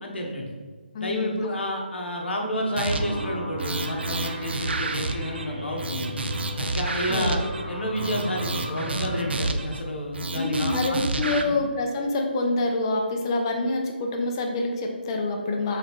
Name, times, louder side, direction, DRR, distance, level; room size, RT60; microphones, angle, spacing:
voice 1, 0.0-0.5 1.0-6.1 6.7-7.4 7.7-11.0 11.3-11.6, equal, 75° left, 1 dB, 0.9 m, -30 dB
voice 2, 0.9-1.5 7.1-7.4 10.4-15.8, left 2 dB, 25° left, 2 dB, 0.4 m, -26 dB
sound 1, 2.8-9.4, equal, 40° right, 1.1 m, -36 dB
sound 2, 2.8-3.2 3.6-5.4 5.8-7.6 8.0-9.8 10.1-11.4, right 3 dB, 70° right, 0.4 m, -30 dB
3.6 x 3.0 x 3.5 m, 1.5 s
hypercardioid pair, 160°, 6 cm